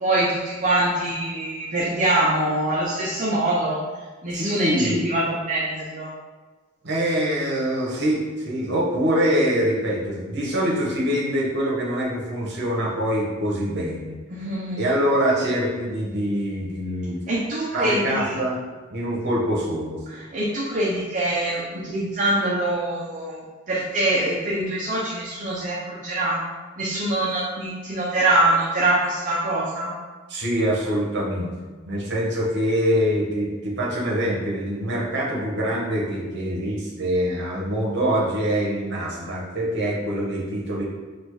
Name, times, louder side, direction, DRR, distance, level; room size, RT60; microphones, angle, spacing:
voice 1, 0.0-3.8 4.2-6.1 14.3-14.8 17.3-18.4 20.1-26.4 26.8-29.9, right 1 dB, 40° right, -6 dB, 0.7 m, -24 dB
voice 2, 4.3-5.0 6.8-14.2 14.7-17.2 17.7-18.6 18.9-20.0 30.3-31.5 31.8-40.9, equal, 55° right, -4 dB, 1.1 m, -24 dB
4.2 x 2.5 x 4.7 m, 1.4 s
head